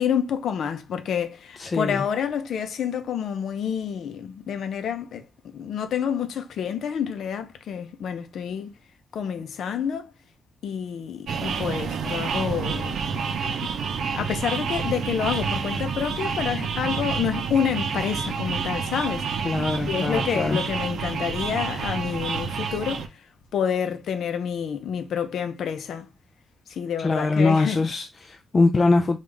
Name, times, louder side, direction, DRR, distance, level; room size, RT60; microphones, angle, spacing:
voice 1, 0.0-8.8 9.1-10.1 10.6-13.0 13.5-13.7 14.1-19.3 19.7-26.1 26.7-27.9, left 8 dB, 70° left, 0.6 m, -28 dB
voice 2, 1.6-2.0 19.4-20.6 27.0-29.2, left 3 dB, 30° left, 0.4 m, -22 dB
sound 1, 11.3-23.1, right 6 dB, 65° right, 0.5 m, -29 dB
5.2 x 2.4 x 3.2 m
wide cardioid pair, 170°, 0 cm